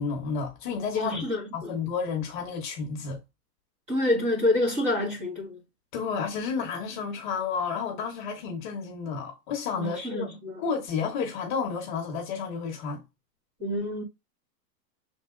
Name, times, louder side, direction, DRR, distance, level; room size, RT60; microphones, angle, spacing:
voice 1, 0.0-1.2 1.5-3.2 5.9-10.3 10.6-13.0, left 5 dB, 30° left, 1.3 m, -31 dB
voice 2, 0.9-1.7 3.9-5.6 9.8-10.6 13.6-14.0, left 1 dB, 15° right, 1.8 m, -27 dB
7.0 x 3.6 x 3.8 m
supercardioid pair, 175°, 50 cm